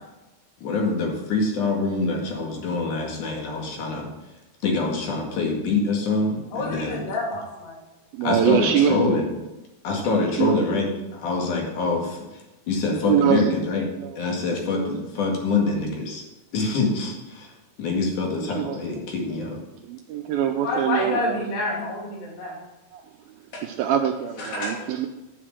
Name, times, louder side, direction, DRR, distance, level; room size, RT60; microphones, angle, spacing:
voice 1, 0.6-4.1 4.6-7.0 8.2-9.3 9.8-16.2 16.5-19.6 21.0-21.1 21.7-22.0, left 3 dB, 55° left, 0 dB, 3.1 m, -25 dB
voice 2, 6.5-7.8 20.5-22.6 23.5-23.7 24.4-24.8, left 2 dB, 80° left, -2 dB, 4.9 m, -29 dB
voice 3, 8.1-9.2 10.4-10.6 12.9-13.5 14.8-15.0 18.6-18.8 19.9-21.4 22.9-23.0 23.6-25.1, right 10 dB, 80° right, 5 dB, 2.2 m, -23 dB
10.0 x 6.7 x 7.4 m, 1.0 s
omnidirectional pair, 4.8 m